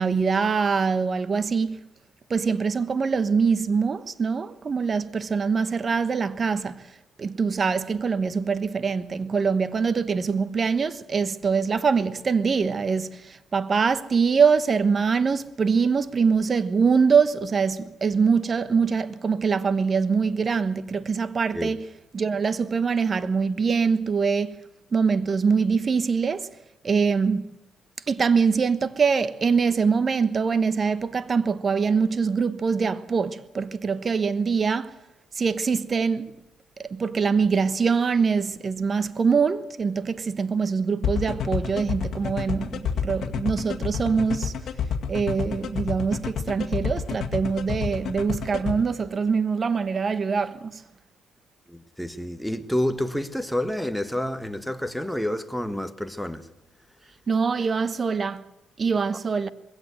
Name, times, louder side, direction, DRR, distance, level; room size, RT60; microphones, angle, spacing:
voice 1, 0.0-1.8 2.3-6.9 7.2-21.9 22.1-24.6 24.9-26.5 26.8-27.5 28.1-34.9 35.3-36.3 36.8-44.5 45.1-50.8 57.3-58.4 58.8-59.5, right 5 dB, 40° right, 1.1 m, -23 dB
sound 1, 41.0-48.7, left 7 dB, 65° left, 2.1 m, -28 dB
voice 2, 51.7-56.5, left 1 dB, ahead, 1.4 m, -29 dB
21.5 x 16.5 x 8.0 m
cardioid pair, 90°, 0 cm